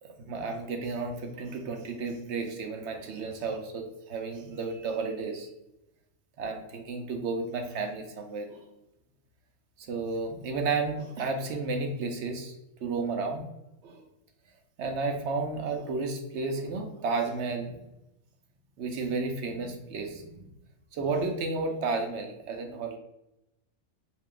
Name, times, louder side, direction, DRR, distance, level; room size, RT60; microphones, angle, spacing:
voice 1, 0.0-5.5 6.4-8.6 9.8-12.5 12.8-13.4 13.8-14.0 14.8-17.8 18.8-20.4 20.9-23.0, right 4 dB, 70° right, 4 dB, 0.9 m, -32 dB
3.3 x 2.8 x 3.7 m, 0.89 s
omnidirectional pair, 1.3 m